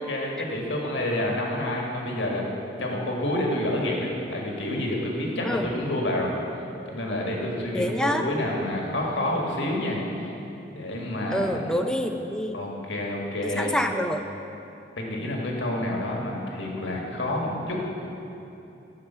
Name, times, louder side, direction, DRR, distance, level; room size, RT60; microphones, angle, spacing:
voice 1, 0.0-2.5 2.8-6.3 6.9-10.0 10.7-11.8 12.5-13.8 15.0-17.9, left 1 dB, 85° left, -1 dB, 1.7 m, -28 dB
voice 2, 7.7-8.2 11.3-12.6 13.4-14.2, equal, 5° left, 5 dB, 0.4 m, -27 dB
14.0 x 5.0 x 5.7 m, 2.9 s
head